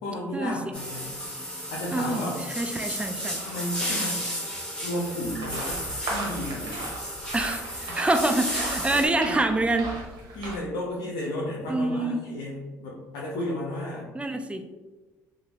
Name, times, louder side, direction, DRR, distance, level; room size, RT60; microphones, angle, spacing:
voice 1, 0.0-1.1 1.7-2.4 3.4-4.2 4.8-6.9 7.9-8.0 8.9-9.3 10.3-14.1, left 1 dB, 80° left, -4 dB, 0.6 m, -33 dB
sound 1, 0.7-9.1, equal, 10° left, 1.3 m, -33 dB
voice 2, 1.9-3.4 7.3-9.9 11.7-12.4 14.1-14.6, right 2 dB, 15° right, 7 dB, 0.4 m, -26 dB
sound 2, 5.2-10.6, right 2 dB, 70° right, 0.9 m, -36 dB
2.7 x 2.5 x 2.9 m, 1.2 s
hypercardioid pair, 60°, 8 cm